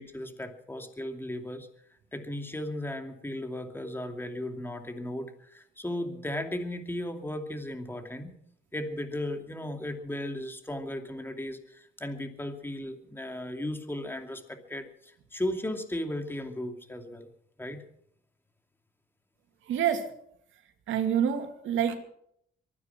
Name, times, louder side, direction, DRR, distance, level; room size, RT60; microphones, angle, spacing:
voice 1, 0.0-1.7 2.1-8.4 8.7-17.3 17.6-17.8, left 1 dB, 10° left, 5 dB, 2.6 m, -36 dB
voice 2, 19.7-20.1 20.9-22.0, right 8 dB, 80° right, 6 dB, 2.5 m, -27 dB
23.5 x 9.7 x 5.9 m, 0.68 s
cardioid pair, 90°, 20 cm